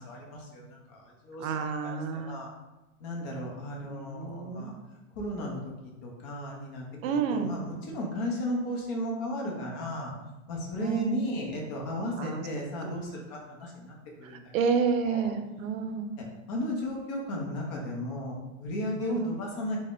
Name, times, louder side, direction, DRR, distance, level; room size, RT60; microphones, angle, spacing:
voice 1, 0.0-1.5 1.8-2.5 3.0-4.7 5.2-10.1 10.5-14.4 15.0-15.3 16.5-19.8, left 1 dB, 35° left, -1 dB, 0.6 m, -35 dB
voice 2, 1.4-2.4 3.8-4.8 7.0-7.6 10.8-11.3 12.2-12.4 14.2-16.2 19.0-19.3, right 6 dB, 80° right, 7 dB, 0.5 m, -30 dB
3.3 x 2.1 x 2.4 m, 1.0 s
supercardioid pair, 140°, 40 cm